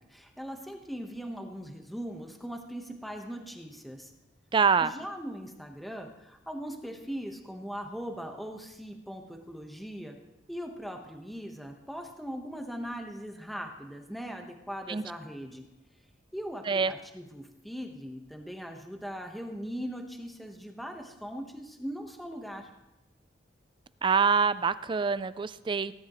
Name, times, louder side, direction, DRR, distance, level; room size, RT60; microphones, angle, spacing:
voice 1, 0.1-4.1 4.8-10.2 10.5-15.6 16.3-22.7, equal, ahead, 3 dB, 1.1 m, -40 dB
voice 2, 4.5-4.9 14.9-15.0 16.7-16.9 24.0-25.9, right 5 dB, 25° right, 15 dB, 0.3 m, -25 dB
18.5 x 10.5 x 3.1 m, 0.95 s
head